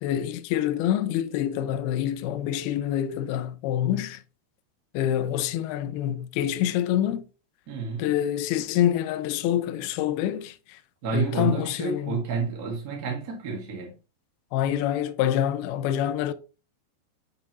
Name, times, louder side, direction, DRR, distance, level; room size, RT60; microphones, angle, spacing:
voice 1, 0.0-4.2 4.9-7.3 8.0-10.8 11.1-12.2 14.5-16.3, left 11 dB, 85° left, 2.2 m, -26 dB
voice 2, 7.7-8.1 11.0-13.9, right 5 dB, 60° right, 0.9 m, -30 dB
8.0 x 5.5 x 3.0 m
omnidirectional pair, 5.2 m